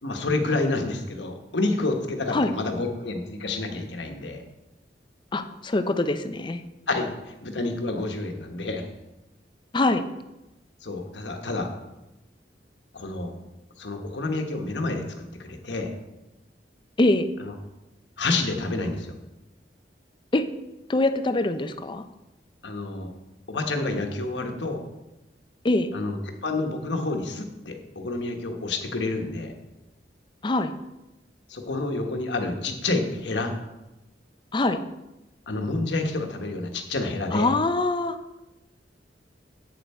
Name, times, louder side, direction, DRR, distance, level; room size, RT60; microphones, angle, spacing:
voice 1, 0.0-4.4 6.9-8.8 10.8-11.7 12.9-13.3 13.8-15.9 17.4-17.5 18.2-19.1 22.6-23.1 23.5-24.8 25.9-29.5 31.5-33.5 35.5-37.5, left 2 dB, 80° left, 4 dB, 1.2 m, -29 dB
voice 2, 5.3-6.6 9.7-10.0 17.0-17.3 20.3-20.5 20.9-22.0 25.6-25.9 30.4-30.7 34.5-34.8 37.3-38.2, left 2 dB, 25° left, 9 dB, 0.5 m, -23 dB
8.5 x 7.1 x 4.3 m, 0.98 s
head